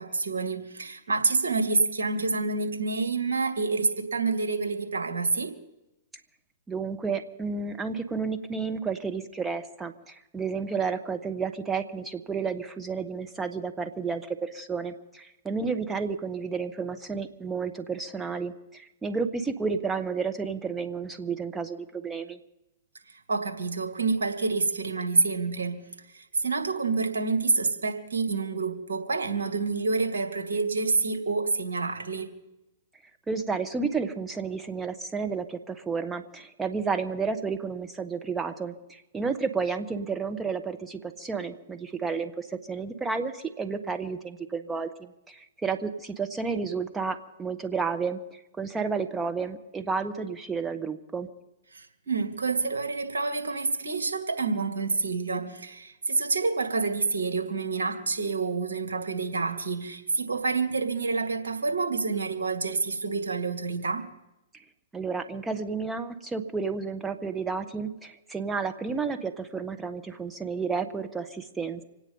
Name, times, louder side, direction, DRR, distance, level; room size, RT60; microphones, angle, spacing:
voice 1, 0.0-5.6 23.1-25.8 26.1-32.3 51.7-64.1, right 4 dB, 75° right, 2.3 m, -28 dB
voice 2, 6.7-22.4 33.3-48.2 48.6-51.3 64.9-71.8, right 5 dB, 10° right, 1.3 m, -31 dB
26.0 x 9.2 x 5.5 m
hypercardioid pair, 115°, 0 cm